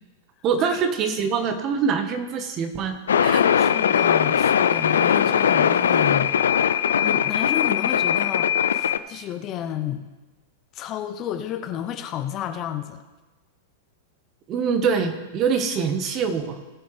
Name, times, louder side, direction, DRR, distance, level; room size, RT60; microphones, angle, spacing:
voice 1, 0.4-3.0 3.2-3.4 14.5-16.6, right 6 dB, 40° right, 7 dB, 1.5 m, -24 dB
sound 1, 3.1-9.0, left 8 dB, 75° left, 0.5 m, -20 dB
voice 2, 3.6-6.6 7.0-10.0 10.7-13.0, left 11 dB, 40° left, 7 dB, 0.9 m, -31 dB
19.0 x 6.9 x 3.4 m, 1.2 s
hypercardioid pair, 100°, 0 cm